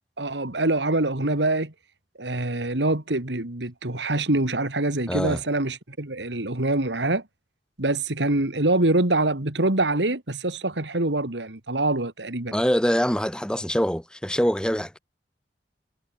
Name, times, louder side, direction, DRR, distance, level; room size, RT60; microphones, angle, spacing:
voice 1, 0.2-1.7 2.2-7.2 7.8-12.6, right 2 dB, 90° right, 2.7 m, -25 dB
voice 2, 5.1-5.4 12.5-15.0, equal, 5° left, 3.9 m, -24 dB
head